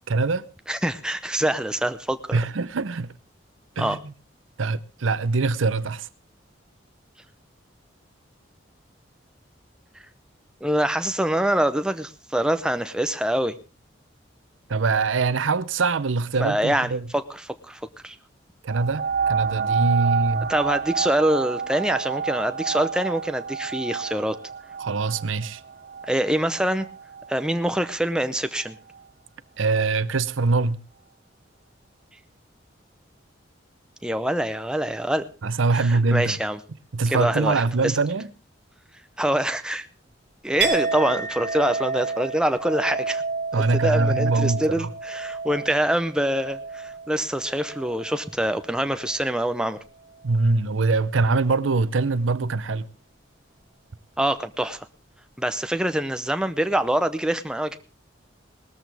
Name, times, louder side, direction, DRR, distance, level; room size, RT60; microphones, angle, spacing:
voice 1, 0.1-0.4 2.3-3.1 3.8-4.0 4.6-6.1 14.7-17.1 18.6-20.5 24.8-25.6 29.6-30.8 35.4-36.4 36.9-38.3 43.5-44.9 50.2-52.9, right 3 dB, 90° right, 0.7 m, -23 dB
voice 2, 0.7-2.4 3.8-4.0 10.6-13.6 16.4-18.2 20.5-24.4 26.0-26.9 27.3-28.8 34.0-35.3 35.7-36.6 37.1-37.9 39.2-39.9 40.4-43.2 43.5-49.8 54.2-54.9 55.4-57.8, right 1 dB, 5° right, 0.6 m, -25 dB
sound 1, 18.7-28.0 28.6-28.7, right 6 dB, 50° right, 0.6 m, -29 dB
Chink clink, 40.6-48.3 48.6-49.3, right 4 dB, 25° right, 3.6 m, -30 dB
19.0 x 13.5 x 3.4 m
head